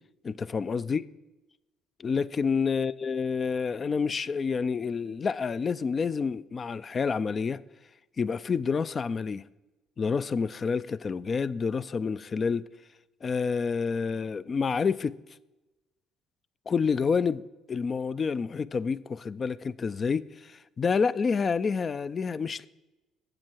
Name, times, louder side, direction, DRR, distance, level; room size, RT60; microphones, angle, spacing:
voice 1, 0.2-1.0 2.0-7.6 8.2-9.4 10.0-12.7 13.2-15.2 16.7-17.4 17.7-22.7, left 5 dB, 40° left, 0.3 m, -28 dB
7.6 x 7.5 x 4.5 m
supercardioid pair, 65°, 0 cm